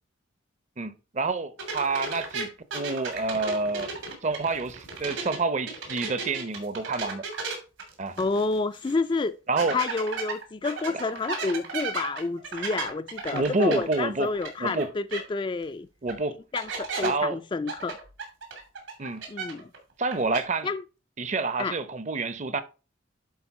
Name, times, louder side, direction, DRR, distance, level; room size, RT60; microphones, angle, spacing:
voice 1, 0.8-3.9 4.2-7.2 8.0-8.2 9.5-9.8 13.3-14.3 14.6-14.9 16.0-16.4 17.0-17.4 19.0-19.2 20.0-20.7 21.2-22.6, right 3 dB, 35° right, 0.7 m, -28 dB
sound 1, 1.6-5.4 5.7-8.6 8.9-9.0 9.6-14.8 15.1-15.2 16.1-16.2 16.6-17.1 17.7-19.8 20.0-20.4, right 4 dB, 80° right, 3.0 m, -34 dB
voice 2, 8.2-9.4 9.7-15.9 16.5-18.0 19.3-19.7 20.6-20.8 21.6-21.8, left 3 dB, 25° left, 0.3 m, -29 dB
10.5 x 4.2 x 4.2 m
head